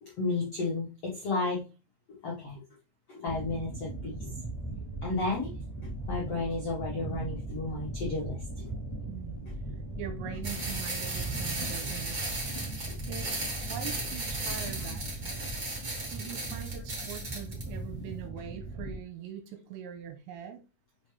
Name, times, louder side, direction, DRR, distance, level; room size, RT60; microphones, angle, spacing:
voice 1, 0.0-1.6 2.2-2.6 3.1-4.2 5.0-5.5 6.0-8.7, left 3 dB, 90° left, 1.3 m, -32 dB
sound 1, 3.3-19.0, right 2 dB, ahead, 2.0 m, -38 dB
voice 2, 9.1-9.4 10.0-12.2 13.1-15.4 16.1-20.6, right 9 dB, 80° right, 2.8 m, -42 dB
sound 2, 10.4-17.6, right 2 dB, 40° right, 1.2 m, -36 dB
6.3 x 5.8 x 3.4 m
omnidirectional pair, 5.6 m